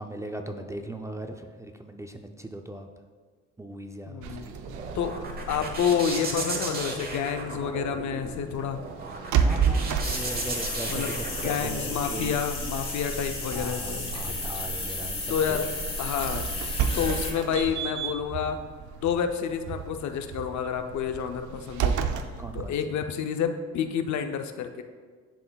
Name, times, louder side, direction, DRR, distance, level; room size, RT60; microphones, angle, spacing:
voice 1, 0.0-2.9 3.6-4.6 9.3-11.8 12.1-12.4 13.5-15.6 22.4-22.8, right 1 dB, 10° right, 5 dB, 0.4 m, -39 dB
voice 2, 4.1-4.4 4.9-5.2 5.5-8.8 10.9-14.4 15.3-15.7 16.0-16.5 16.9-18.6 19.0-22.1 22.5-24.8, left 7 dB, 70° left, 7 dB, 0.6 m, -29 dB
sound 1, 4.2-22.7, right 7 dB, 75° right, 0.5 m, -33 dB
sound 2, 4.4-12.2, right 3 dB, 30° right, 0.9 m, -36 dB
sound 3, 10.0-17.3, left 1 dB, 20° left, 1.2 m, -33 dB
11.0 x 3.9 x 2.3 m, 1.5 s
cardioid pair, 90°, 30 cm